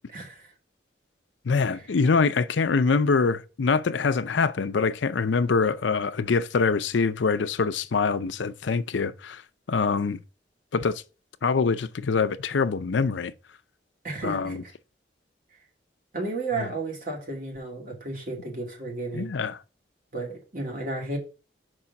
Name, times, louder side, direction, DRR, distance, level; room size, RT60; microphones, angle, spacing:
voice 1, 0.1-0.5 1.7-1.9 14.0-14.7 16.1-19.3 20.1-21.2, right 3 dB, 50° right, 2.4 m, -33 dB
voice 2, 1.5-9.4 9.7-10.2 10.7-11.0 11.4-13.3 14.2-14.6 16.6-16.7 19.1-19.5, left 4 dB, 90° left, 0.5 m, -24 dB
5.4 x 4.8 x 5.8 m
head